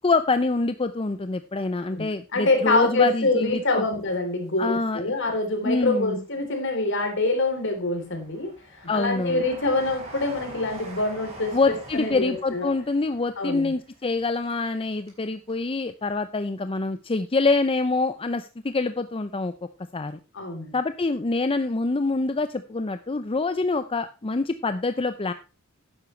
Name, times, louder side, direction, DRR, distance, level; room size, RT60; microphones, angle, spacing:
voice 1, 0.0-3.8 4.6-5.0 5.6-6.2 8.9-9.4 11.5-19.5 19.9-20.2 20.7-25.3, left 3 dB, 25° left, 10 dB, 0.5 m, -25 dB
voice 2, 1.9-12.7 13.4-13.7 20.3-20.8, left 2 dB, 60° left, 4 dB, 3.4 m, -25 dB
Train, 3.3-4.5 5.0-5.9 6.5-15.2 15.5-15.6, right 1 dB, 30° right, 4.6 m, -45 dB
12.0 x 9.8 x 3.2 m, 0.30 s
head